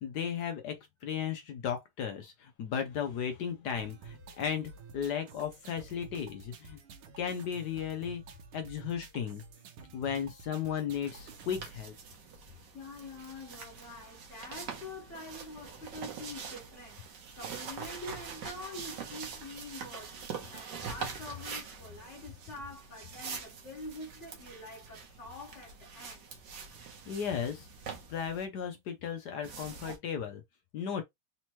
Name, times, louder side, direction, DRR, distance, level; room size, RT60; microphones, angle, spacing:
voice 1, 0.0-6.8 7.2-8.2 8.5-9.4 9.9-11.9 27.1-27.7 28.1-30.4 30.7-31.0, left 8 dB, 65° left, 1.0 m, -35 dB
sound 1, 3.8-11.8, right 4 dB, 85° right, 1.7 m, -51 dB
sound 2, 11.1-28.4 29.4-30.0, right 6 dB, 60° right, 1.6 m, -44 dB
voice 2, 12.7-26.3, left 2 dB, 40° left, 1.4 m, -46 dB
4.2 x 2.9 x 3.0 m
omnidirectional pair, 2.3 m